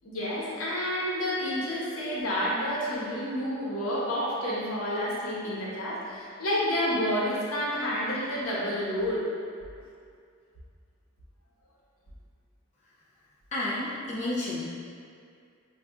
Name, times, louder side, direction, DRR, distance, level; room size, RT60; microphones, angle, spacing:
voice 1, 0.0-9.2, equal, 80° left, -6 dB, 0.9 m, -29 dB
voice 2, 13.5-14.7, left 1 dB, 35° left, -9 dB, 0.5 m, -31 dB
5.4 x 2.3 x 2.3 m, 2.3 s
head